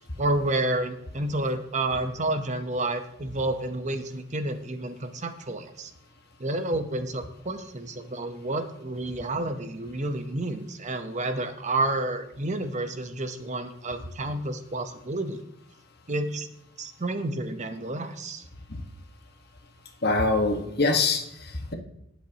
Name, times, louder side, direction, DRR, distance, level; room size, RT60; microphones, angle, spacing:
voice 1, 0.2-5.9 6.4-15.4 16.1-16.5 16.8-18.4, right 2 dB, 35° right, 8 dB, 0.9 m, -30 dB
voice 2, 20.0-21.7, left 3 dB, 50° left, 4 dB, 1.4 m, -24 dB
19.5 x 7.4 x 2.9 m, 0.81 s
head